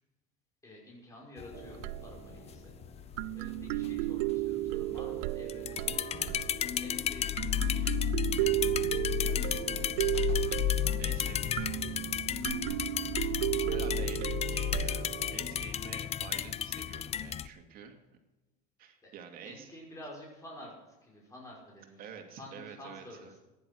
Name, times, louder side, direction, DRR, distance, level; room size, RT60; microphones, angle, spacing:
voice 1, 0.6-2.7 3.0-6.4 6.8-8.0 8.3-8.6 8.9-9.7 19.0-19.1 19.4-20.8 21.0-23.4, left 1 dB, 15° left, -3 dB, 6.0 m, -50 dB
sound 1, 1.4-17.5, left 11 dB, 35° left, 0.6 m, -33 dB
sound 2, 1.5-2.4 3.2-7.0 7.4-15.6, right 19 dB, 85° right, 0.4 m, -34 dB
voice 2, 9.7-10.1 10.4-12.2 13.7-18.0 18.8-19.7 22.0-23.0, right 7 dB, 55° right, 4 dB, 2.5 m, -49 dB
15.0 x 10.5 x 6.3 m, 1.1 s
supercardioid pair, 115°, 18 cm